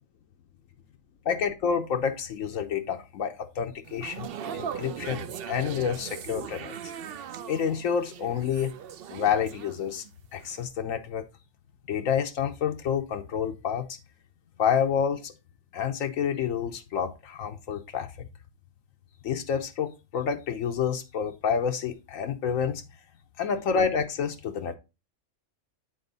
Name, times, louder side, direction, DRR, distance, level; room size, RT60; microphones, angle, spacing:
voice 1, 1.3-4.3 4.5-6.8 7.5-8.7 9.1-10.0 10.3-11.2 11.9-14.0 14.6-15.3 15.7-18.3 19.2-22.8 23.4-24.8, left 7 dB, 80° left, 1.1 m, -28 dB
sound 1, 3.9-10.1 10.4-10.6, right 8 dB, 60° right, 0.6 m, -39 dB
7.8 x 4.2 x 4.0 m
omnidirectional pair, 1.4 m